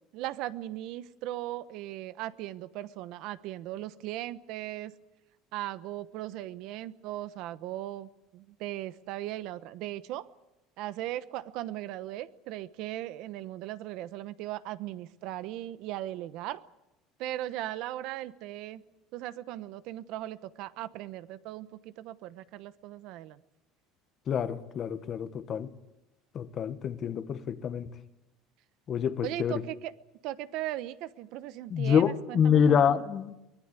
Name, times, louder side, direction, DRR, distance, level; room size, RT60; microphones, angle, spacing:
voice 1, 0.1-4.9 5.5-10.3 10.8-16.6 17.2-18.8 19.1-23.4 29.2-29.9 30.2-32.6, right 14 dB, 65° right, 1.0 m, -38 dB
voice 2, 24.3-25.7 26.3-27.9 28.9-29.6 31.7-33.3, left 7 dB, 35° left, 1.5 m, -26 dB
24.0 x 18.5 x 8.3 m
cardioid pair, 145°, 0 cm